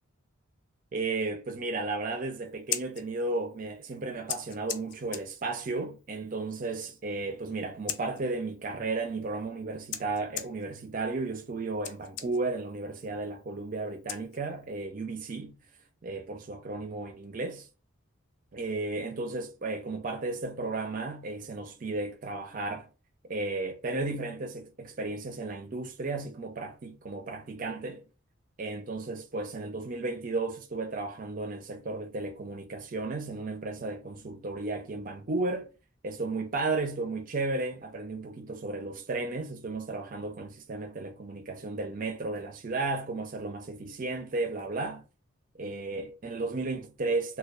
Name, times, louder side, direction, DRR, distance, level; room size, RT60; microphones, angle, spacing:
voice 1, 0.9-15.5 16.0-17.7 18.5-22.9 23.2-28.0 28.6-35.7 36.0-45.0 45.6-47.4, right 3 dB, 40° right, 0.4 m, -34 dB
Scissors, 2.5-14.8, left 9 dB, 55° left, 0.3 m, -43 dB
2.2 x 2.2 x 2.5 m
head